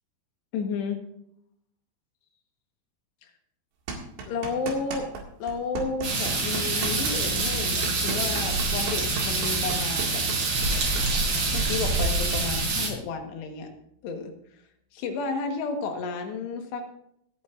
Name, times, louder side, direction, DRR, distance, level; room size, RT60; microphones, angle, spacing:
voice 1, 0.5-1.0 3.2-3.3 4.3-5.1 5.4-10.2 11.5-13.7 14.0-14.3 14.9-16.9, left 4 dB, 85° left, 4 dB, 3.6 m, -32 dB
sound 1, 3.9-5.2 5.5-11.1, right 4 dB, 85° right, 4.3 m, -36 dB
sound 2, 6.0-12.9, right 3 dB, 65° right, 5.5 m, -26 dB
Bass guitar, 6.8-13.2, left 6 dB, ahead, 2.2 m, -41 dB
26.5 x 8.8 x 2.5 m, 0.74 s
omnidirectional pair, 4.8 m